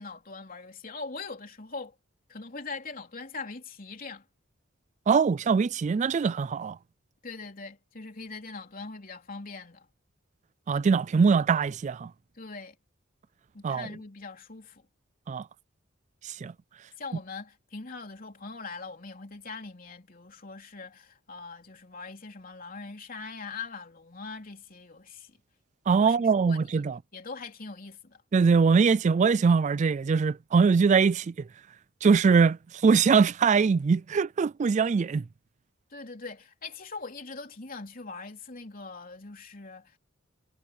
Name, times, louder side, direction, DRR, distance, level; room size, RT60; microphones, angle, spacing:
voice 1, 0.0-1.9 2.3-4.2 7.2-9.9 12.3-12.7 13.5-14.8 17.0-25.4 26.0-26.7 27.1-28.2 35.9-40.0, left 4 dB, 45° left, 3.4 m, -42 dB
voice 2, 5.1-6.8 10.7-12.1 13.6-13.9 15.3-15.5 16.2-16.5 25.9-27.0 28.3-31.3 32.0-35.2, right 5 dB, 35° right, 0.3 m, -22 dB
head